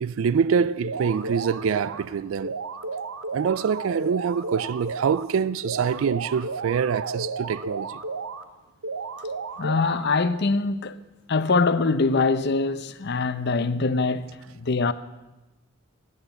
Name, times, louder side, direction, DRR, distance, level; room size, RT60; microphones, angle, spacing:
voice 1, 0.0-2.6 3.3-8.0, right 6 dB, 75° right, 0.4 m, -25 dB
sound 1, 0.8-2.0 2.4-5.2 5.6-8.4 8.8-10.4, right 4 dB, 90° right, 0.9 m, -33 dB
voice 2, 9.6-11.0 11.3-14.9, left 3 dB, 55° left, 0.7 m, -23 dB
13.0 x 9.8 x 7.9 m
head